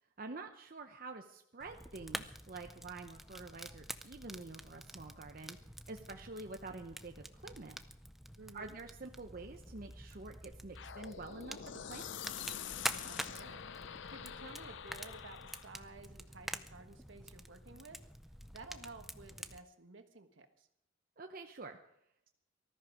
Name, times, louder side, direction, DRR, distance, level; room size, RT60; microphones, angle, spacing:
voice 1, 0.2-5.6 5.9-7.8 8.5-12.1 21.2-21.8, right 3 dB, 45° right, 4 dB, 0.8 m, -48 dB
Fire, 1.6-19.6, equal, ahead, 0.5 m, -47 dB
voice 2, 8.4-8.8 13.0-18.0 18.5-20.7, right 3 dB, 70° right, 7 dB, 1.5 m, -54 dB
sound 1, 10.7-15.8, left 9 dB, 65° left, 0.5 m, -46 dB
19.0 x 13.5 x 4.9 m, 0.74 s
head